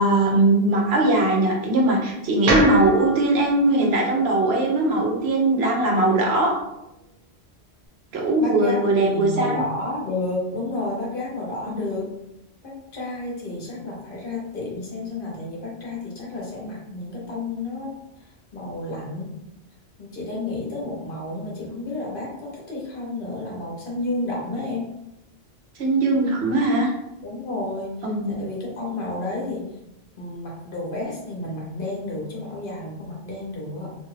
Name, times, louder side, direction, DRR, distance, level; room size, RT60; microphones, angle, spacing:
voice 1, 0.0-6.5 8.1-9.6 11.7-11.8 25.8-26.9 28.0-28.3, right 2 dB, 75° right, -1 dB, 1.0 m, -20 dB
sound 1, 2.5-6.6, right 2 dB, 55° right, 0.5 m, -29 dB
voice 2, 8.4-12.2 12.6-17.9 18.5-19.4 20.0-24.9 27.2-28.1 28.4-29.7 30.2-34.0, left 2 dB, 55° left, -3 dB, 0.9 m, -31 dB
2.6 x 2.3 x 3.1 m, 0.87 s
omnidirectional pair, 1.1 m